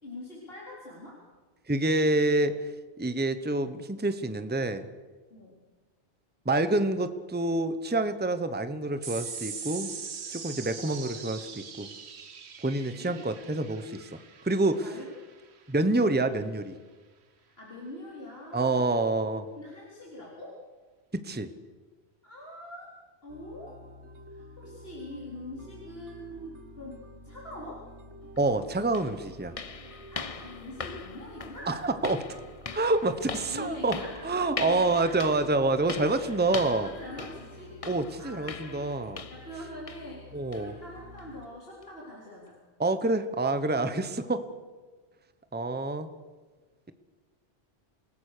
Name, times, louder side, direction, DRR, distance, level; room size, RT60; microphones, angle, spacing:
voice 1, 0.0-1.2 5.3-5.6 12.9-13.2 13.4-13.6 14.8-15.1 15.9-16.2 17.4-19.0 19.5-20.6 22.2-22.9 23.2-23.8 24.3-27.9 30.1-31.8 32.7-32.9 33.5-34.1 34.5-35.2 36.1-37.8 38.2-38.9 39.3-42.6, left 1 dB, 60° left, -4 dB, 4.4 m, -44 dB
voice 2, 1.7-2.5 3.0-4.8 6.4-9.9 10.3-11.9 12.6-14.1 14.4-14.9 15.7-16.8 18.5-19.5 21.2-21.5 28.4-29.5 31.7-32.2 32.7-33.9 34.2-36.9 37.8-39.2 40.3-40.7 42.8-44.4 45.5-46.1, right 2 dB, 10° right, 11 dB, 1.0 m, -27 dB
sound 1, 9.0-15.8, right 6 dB, 70° right, 1.4 m, -42 dB
sound 2, 23.3-41.5, equal, 90° right, 1.9 m, -49 dB
sound 3, 28.4-28.5 28.9-39.6 39.9-40.2 40.5-40.7 41.2-41.3 41.8-41.9, left 5 dB, 35° left, 0.8 m, -41 dB
28.5 x 19.0 x 6.8 m, 1.4 s
omnidirectional pair, 1.1 m